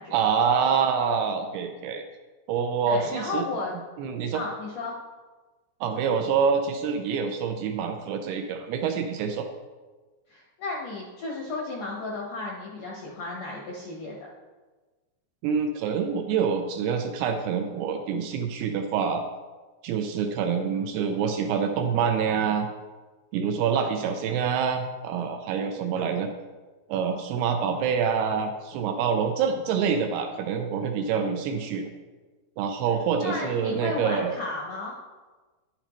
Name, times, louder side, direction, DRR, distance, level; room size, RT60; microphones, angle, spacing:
voice 1, 0.1-2.0 2.5-3.5 4.0-4.4 5.8-9.5 15.4-19.2 19.8-22.7 23.3-26.3 26.9-31.9 32.6-34.3, right 6 dB, 80° right, 5 dB, 2.4 m, -26 dB
voice 2, 2.9-3.7 4.3-4.9 10.3-14.2 33.2-34.9, left 3 dB, 75° left, -3 dB, 1.8 m, -33 dB
9.8 x 9.8 x 3.0 m, 1.3 s
omnidirectional pair, 4.9 m